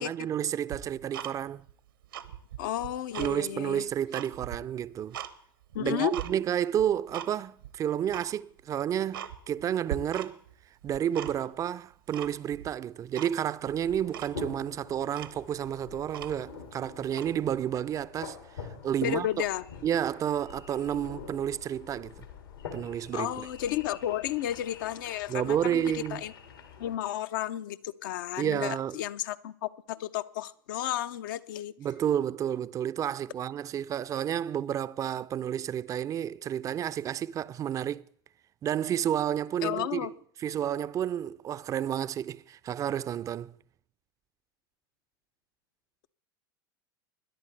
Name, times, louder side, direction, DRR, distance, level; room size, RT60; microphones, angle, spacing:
voice 1, 0.0-1.6 3.2-5.2 5.8-10.4 10.8-19.4 19.8-22.3 22.7-23.5 25.3-26.2 28.4-29.0 31.8-38.0 38.6-40.1 40.4-43.5, right 10 dB, 30° right, 0.4 m, -31 dB
Tick-tock, 0.7-1.7 2.0-3.4 3.8-5.3 5.7-6.3 6.8-7.3 7.6-7.7 8.1-8.3 8.7-8.8 9.1-9.6 9.9-10.5 10.8-11.6 12.1-12.7 13.1-13.3 13.7-13.8 14.1-14.4 14.8-14.9 15.1-16.6 17.1-17.3, right 11 dB, 75° right, 0.9 m, -40 dB
voice 2, 2.6-3.9 5.7-6.1 19.0-19.6 23.1-26.3 26.8-31.7 39.6-40.1, left 12 dB, 65° left, 0.6 m, -32 dB
sound 1, 13.6-27.0, left 5 dB, 80° left, 2.2 m, -46 dB
21.0 x 10.5 x 3.3 m
hypercardioid pair, 90°, 12 cm